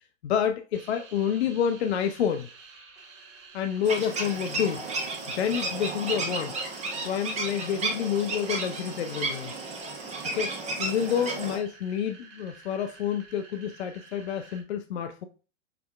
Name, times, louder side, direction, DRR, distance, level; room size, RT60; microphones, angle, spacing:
voice 1, 0.2-2.5 3.5-4.8 5.3-6.6 7.0-9.5 10.3-10.5 10.8-15.3, left 8 dB, 60° left, 7 dB, 0.5 m, -28 dB
sound 1, 0.7-14.6, right 5 dB, 45° right, 1.4 m, -51 dB
sound 2, 3.8-11.6, right 3 dB, 20° right, 0.9 m, -33 dB
5.7 x 3.4 x 2.3 m, 0.35 s
figure-of-eight pair, 100°, 38 cm